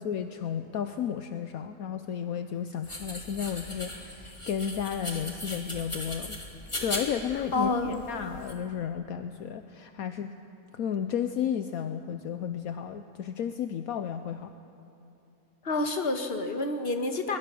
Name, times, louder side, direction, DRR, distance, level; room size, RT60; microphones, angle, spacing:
voice 1, 0.0-6.4 6.8-10.4 10.7-14.5, left 8 dB, 70° left, 8 dB, 1.1 m, -33 dB
sound 1, 2.8-8.5, left 1 dB, 20° left, 2.4 m, -39 dB
voice 2, 7.5-8.0 15.6-17.4, left 3 dB, 40° left, 5 dB, 1.6 m, -28 dB
22.0 x 21.0 x 6.9 m, 2.7 s
omnidirectional pair, 1.6 m